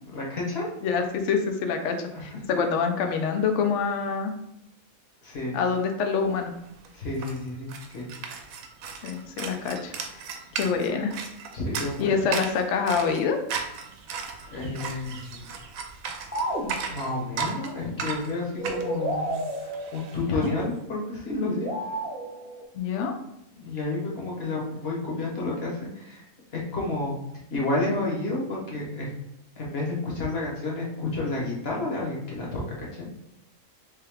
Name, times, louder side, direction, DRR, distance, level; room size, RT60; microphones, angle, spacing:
voice 1, 0.0-0.7 2.1-2.4 5.2-5.5 6.9-8.1 11.5-12.3 14.5-15.5 16.9-19.3 19.6-21.7 23.5-27.1 27.5-29.1 29.6-33.1, left 2 dB, 50° left, -3 dB, 1.1 m, -30 dB
voice 2, 0.8-2.0 2.2-4.3 5.5-6.5 9.0-9.9 10.6-11.1 12.0-13.4 20.3-20.5 22.7-23.1, left 6 dB, 65° left, 5 dB, 0.8 m, -26 dB
sound 1, 6.3-6.4 6.6-20.5, right 6 dB, 75° right, 1.0 m, -36 dB
sound 2, 16.3-17.2 18.6-20.5 21.3-22.6, right 1 dB, 10° right, 0.6 m, -31 dB
3.5 x 3.3 x 3.4 m, 0.81 s
omnidirectional pair, 1.5 m